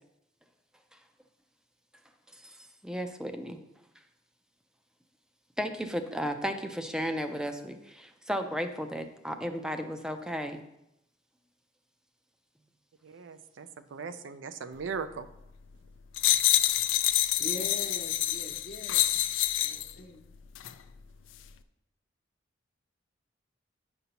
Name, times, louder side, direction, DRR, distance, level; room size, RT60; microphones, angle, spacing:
voice 1, 2.8-3.6 5.6-10.6, equal, 5° right, 7 dB, 0.4 m, -34 dB
voice 2, 13.0-15.3, right 5 dB, 75° right, 11 dB, 0.4 m, -39 dB
sound 1, 16.2-19.9 20.6-20.7, left 14 dB, 80° left, 0.4 m, -27 dB
voice 3, 17.4-19.0 19.6-20.2, left 1 dB, 50° left, 1 dB, 0.7 m, -42 dB
9.2 x 5.3 x 2.9 m, 0.84 s
head